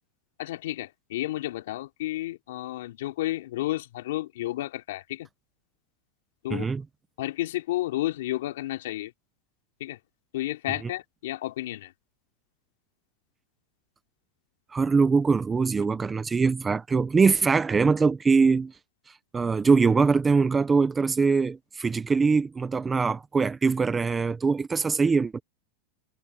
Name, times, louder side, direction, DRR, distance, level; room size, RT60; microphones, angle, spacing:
voice 1, 0.4-5.3 6.4-6.7 7.2-9.1 9.8-10.0 10.3-11.9, left 15 dB, 65° left, 3.0 m, -31 dB
voice 2, 6.5-6.8 14.7-18.7 19.3-25.4, right 4 dB, 10° right, 0.5 m, -22 dB
supercardioid pair, 175°, 0 cm